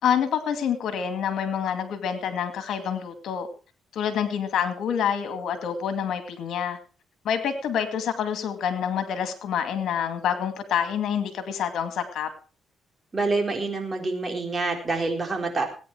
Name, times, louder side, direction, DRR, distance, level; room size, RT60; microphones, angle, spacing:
voice 1, 0.0-3.5 3.9-6.8 7.2-12.3, left 8 dB, 70° left, 9 dB, 2.3 m, -27 dB
voice 2, 13.1-15.7, right 3 dB, 30° right, 3 dB, 4.0 m, -26 dB
18.5 x 9.6 x 4.7 m, 0.37 s
cardioid pair, 90°, 0 cm